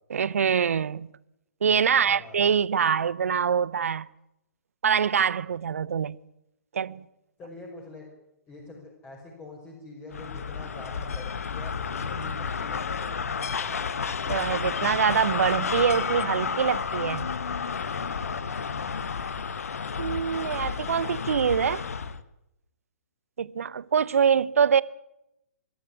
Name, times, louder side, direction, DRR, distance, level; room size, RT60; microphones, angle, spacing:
voice 1, 0.1-1.1 1.6-4.1 4.8-6.2 6.7-7.0 14.3-17.3 20.0-21.9 23.4-24.8, right 7 dB, 65° right, 0.8 m, -24 dB
voice 2, 1.9-2.4 7.4-8.1 8.5-13.2 13.6-13.9 18.2-18.4, left 3 dB, 20° left, 5.4 m, -44 dB
sound 1, 10.1-22.2, left 6 dB, 65° left, 1.3 m, -31 dB
24.0 x 13.0 x 10.0 m
figure-of-eight pair, 125°, 8 cm